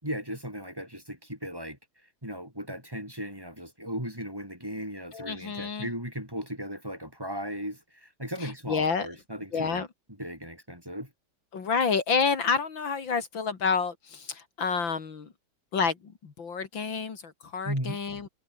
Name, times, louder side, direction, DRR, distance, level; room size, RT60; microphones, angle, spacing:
voice 1, 0.0-1.8 2.2-11.1 17.6-18.0, equal, 10° right, 5.3 m, -37 dB
voice 2, 5.1-5.9 8.4-9.1 9.5-9.9 11.5-15.3 15.7-18.3, left 5 dB, 70° left, 3.1 m, -29 dB
omnidirectional pair, 2.2 m